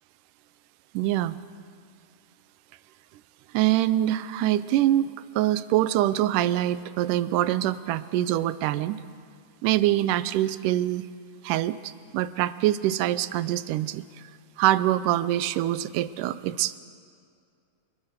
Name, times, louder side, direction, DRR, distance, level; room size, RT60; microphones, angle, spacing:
voice 1, 0.9-1.4 3.5-5.1 5.4-9.0 9.6-11.1 11.4-11.8 12.1-14.1 14.6-16.8, right 13 dB, 90° right, 15 dB, 2.3 m, -24 dB
25.5 x 21.5 x 6.6 m, 2.3 s
omnidirectional pair, 3.6 m